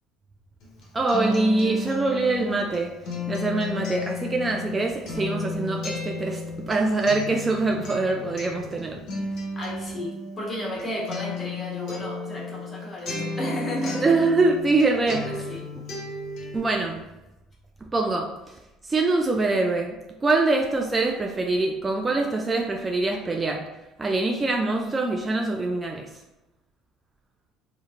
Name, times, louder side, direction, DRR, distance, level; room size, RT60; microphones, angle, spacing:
Acoustic guitar, 0.6-14.8 15.1-16.6, left 3 dB, 55° left, 1.2 m, -34 dB
voice 1, 0.9-3.0 3.3-9.0 14.0-15.5 16.5-17.1 17.9-18.6 18.8-23.7 24.0-26.1, right 3 dB, 25° right, 1 dB, 0.3 m, -24 dB
voice 2, 9.5-14.2 15.2-15.7, left 1 dB, 25° left, -3 dB, 1.1 m, -33 dB
2.8 x 2.5 x 2.4 m, 0.96 s
hypercardioid pair, 65°, 0 cm